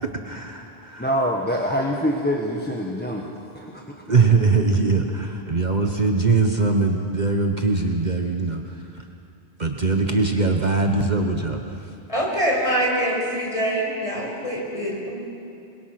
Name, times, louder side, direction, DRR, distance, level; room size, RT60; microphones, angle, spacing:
voice 1, 0.0-1.1 4.1-9.0 9.6-11.9, right 3 dB, 40° right, 3 dB, 1.3 m, -22 dB
voice 2, 1.0-3.8, equal, 10° left, -1 dB, 1.5 m, -25 dB
voice 3, 12.1-15.2, right 1 dB, 30° left, -3 dB, 5.8 m, -24 dB
27.5 x 22.5 x 6.0 m, 2.6 s
omnidirectional pair, 1.1 m